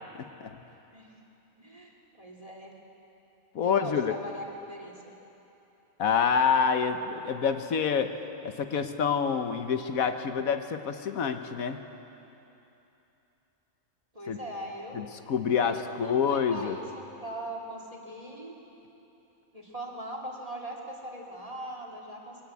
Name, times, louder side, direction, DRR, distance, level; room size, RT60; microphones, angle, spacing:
voice 1, 0.2-0.6 3.5-4.1 6.0-8.1 8.4-11.8 14.3-14.4 14.9-16.8, left 6 dB, 90° left, 7 dB, 1.5 m, -27 dB
voice 2, 1.6-2.7 3.6-5.1 14.1-15.0 15.6-18.5 19.5-22.4, equal, 25° right, -1 dB, 2.8 m, -40 dB
22.0 x 18.0 x 8.4 m, 3.0 s
omnidirectional pair, 1.4 m